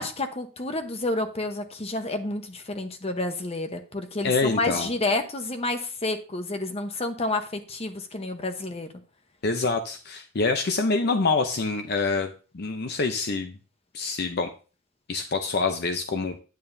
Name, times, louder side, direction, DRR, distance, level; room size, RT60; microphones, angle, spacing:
voice 1, 0.0-8.9, left 2 dB, 30° left, 7 dB, 0.9 m, -29 dB
voice 2, 4.2-4.9 9.4-13.6 13.9-14.5 15.1-16.4, left 3 dB, 50° left, 6 dB, 0.6 m, -26 dB
9.2 x 8.7 x 2.7 m, 0.35 s
head